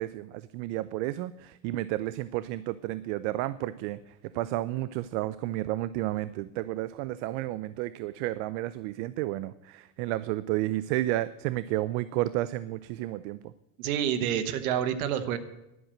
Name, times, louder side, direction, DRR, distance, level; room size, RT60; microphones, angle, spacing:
voice 1, 0.0-4.0 4.3-13.5, right 16 dB, 55° right, 17 dB, 0.5 m, -31 dB
voice 2, 13.8-15.4, right 9 dB, 85° right, 10 dB, 1.2 m, -28 dB
11.0 x 6.4 x 8.7 m, 0.91 s
supercardioid pair, 140°, 42 cm